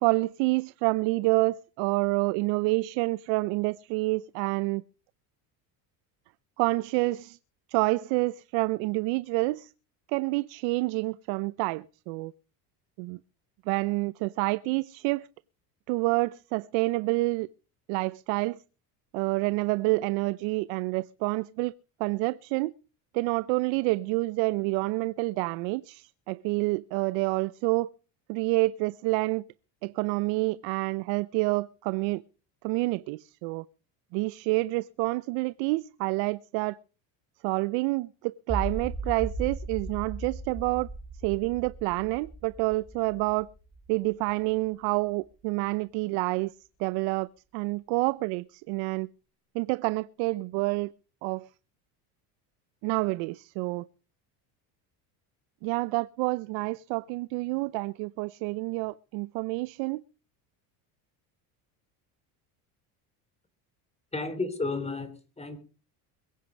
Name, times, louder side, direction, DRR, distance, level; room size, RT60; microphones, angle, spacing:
voice 1, 0.0-4.8 6.6-7.4 7.7-9.7 10.1-12.3 13.0-13.2 13.7-15.3 15.9-17.5 17.9-18.6 19.1-21.7 22.0-22.7 23.1-27.9 28.3-29.4 29.8-32.2 32.6-33.6 34.1-36.8 37.4-40.9 41.2-43.5 43.9-46.5 46.8-49.1 49.5-50.9 51.2-51.5 52.8-53.9 55.6-60.0, right 23 dB, 75° right, 0.7 m, -28 dB
sound 1, 38.5-44.6, right 2 dB, 20° right, 6.0 m, -37 dB
voice 2, 64.1-65.6, left 3 dB, 15° left, 3.3 m, -32 dB
22.0 x 9.5 x 5.2 m
supercardioid pair, 110°, 45 cm